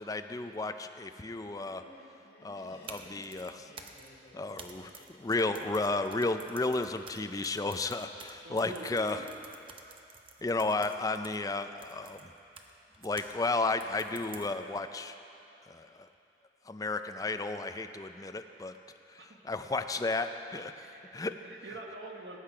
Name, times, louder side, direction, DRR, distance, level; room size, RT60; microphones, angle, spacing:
voice 1, 0.0-1.8 2.4-3.7 4.3-9.2 10.4-12.2 13.0-15.1 15.7-16.1 16.7-18.7 19.1-20.9 21.1-21.3, left 3 dB, 20° left, 8 dB, 0.4 m, -33 dB
Laughter, 1.4-6.5, left 1 dB, 55° left, 2.0 m, -56 dB
sound 1, 2.7-13.4 13.8-14.8, right 5 dB, 30° right, 0.7 m, -51 dB
voice 2, 8.4-9.3 19.2-19.4 20.8-21.0 21.4-22.4, right 2 dB, 65° right, 1 dB, 1.1 m, -45 dB
18.0 x 8.5 x 4.9 m, 2.8 s
head